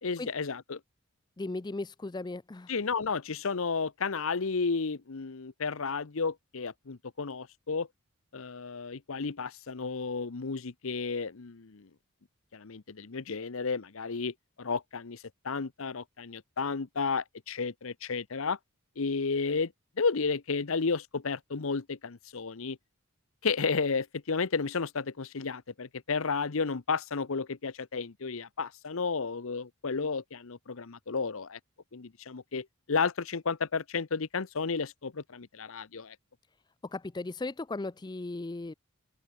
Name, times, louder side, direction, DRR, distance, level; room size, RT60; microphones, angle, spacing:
voice 1, 0.0-0.8 2.7-7.9 8.3-11.9 12.5-18.6 19.0-22.8 23.4-31.6 31.9-36.2, left 4 dB, 65° left, 0.8 m, -32 dB
voice 2, 1.4-2.7 36.8-38.7, left 2 dB, 20° left, 0.4 m, -36 dB
open air
head